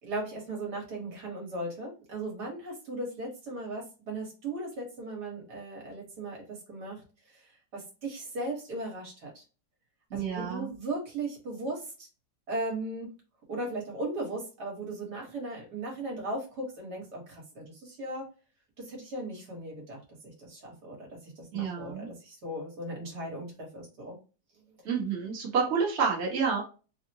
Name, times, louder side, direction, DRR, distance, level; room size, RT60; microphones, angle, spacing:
voice 1, 0.0-9.4 10.1-12.1 12.5-13.1 13.5-18.2 18.8-20.0 20.2-24.2, right 2 dB, 65° right, -1 dB, 1.8 m, -37 dB
voice 2, 10.1-10.7 21.5-22.1 24.8-26.6, right 6 dB, 40° right, -3 dB, 1.2 m, -29 dB
3.7 x 2.1 x 2.7 m, 0.33 s
omnidirectional pair, 1.9 m